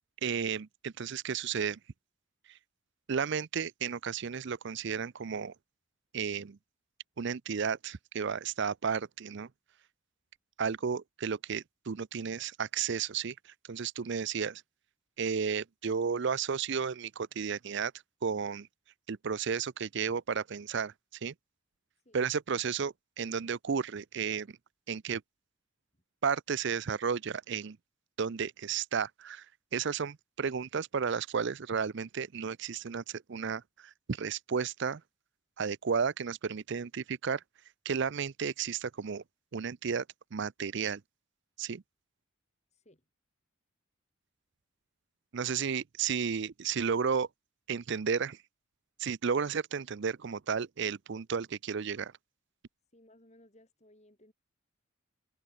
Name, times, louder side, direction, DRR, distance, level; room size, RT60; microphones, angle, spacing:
voice 1, 0.2-1.8 3.1-5.5 6.1-6.6 7.2-9.5 10.6-13.3 13.7-14.6 15.2-17.9 18.2-18.7 19.1-20.9 21.2-21.3 22.1-24.6 24.9-25.2 26.2-27.8 28.2-29.5 29.7-35.0 35.6-37.4 37.8-39.2 39.5-40.0 40.3-41.0 41.6-41.8 45.3-47.3 47.7-48.4 49.0-52.1, right 6 dB, 55° right, 0.5 m, -33 dB
voice 2, 42.7-43.0 52.9-54.3, left 1 dB, 30° left, 4.3 m, -61 dB
head